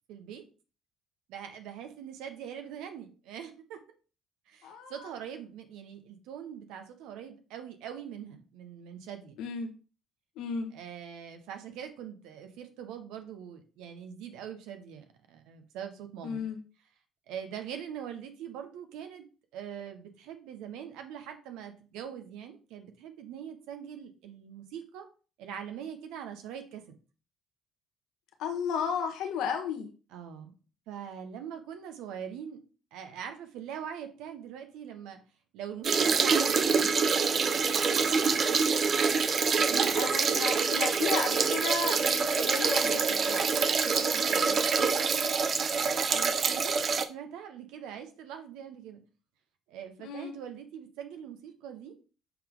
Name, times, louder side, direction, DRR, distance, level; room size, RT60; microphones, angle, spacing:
voice 1, 0.1-0.4 1.3-3.8 4.5-9.4 10.7-16.4 17.3-19.2 19.5-25.1 25.4-26.8 30.1-30.5 30.9-32.6 32.9-35.2 35.5-37.6 37.8-38.7 39.6-40.5 43.4-45.3 46.1-49.0 49.7-51.9, right 8 dB, 75° right, 6 dB, 1.2 m, -42 dB
voice 2, 4.6-5.0 9.4-9.7 10.4-10.7 16.2-16.6 28.4-29.9 39.9-43.4 50.0-50.4, left 6 dB, 70° left, 5 dB, 1.2 m, -34 dB
sound 1, 35.8-47.0, right 5 dB, 45° right, 0.7 m, -26 dB
7.4 x 4.1 x 3.7 m, 0.36 s
hypercardioid pair, 55°, 0 cm